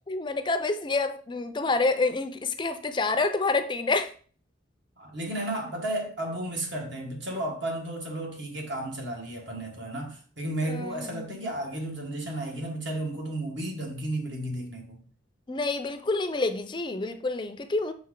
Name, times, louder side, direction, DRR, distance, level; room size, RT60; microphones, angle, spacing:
voice 1, 0.1-4.1 10.7-11.2 15.5-17.9, left 3 dB, 25° left, 0.4 m, -28 dB
voice 2, 5.0-15.0, right 1 dB, 65° right, 1.5 m, -33 dB
6.3 x 4.3 x 3.7 m
head